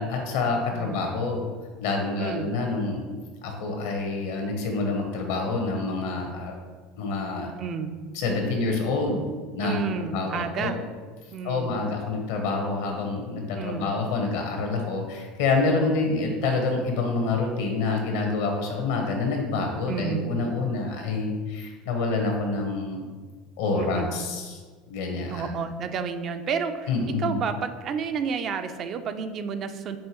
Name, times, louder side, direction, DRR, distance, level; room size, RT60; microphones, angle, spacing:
voice 1, 0.0-1.4 1.8-3.0 3.4-6.5 7.0-7.5 8.1-10.8 11.4-23.1 23.6-24.6 24.9-25.5 26.9-27.4, left 3 dB, 75° left, 2 dB, 0.8 m, -27 dB
voice 2, 0.7-1.1 2.2-2.5 7.6-7.9 9.6-10.8 11.3-11.7 13.6-13.9 15.8-16.1 19.9-20.3 23.7-24.1 25.3-26.9 27.2-30.0, right 6 dB, 45° right, 8 dB, 0.4 m, -31 dB
5.4 x 2.7 x 3.0 m, 1.5 s
hypercardioid pair, 90°, 0 cm